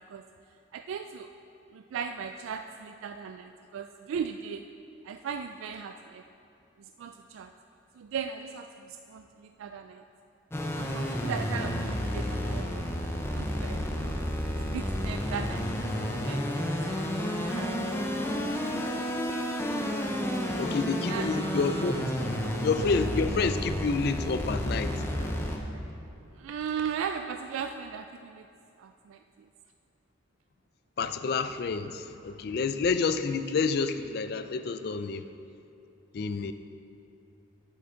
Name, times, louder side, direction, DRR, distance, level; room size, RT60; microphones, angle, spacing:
voice 1, 0.7-1.3 1.7-4.6 5.0-6.2 7.0-7.5 8.0-10.0 10.8-13.8 14.7-16.0 16.2-16.7 17.4-18.1 21.1-21.3 26.4-28.5 28.8-29.2, right 7 dB, 85° right, 7 dB, 0.3 m, -37 dB
sound 1, 10.5-25.6, equal, 10° left, 0.6 m, -31 dB
voice 2, 20.6-22.1 22.6-25.0 31.0-35.2 36.1-36.5, left 4 dB, 50° left, 11 dB, 0.3 m, -29 dB
10.5 x 7.8 x 3.8 m, 2.7 s
head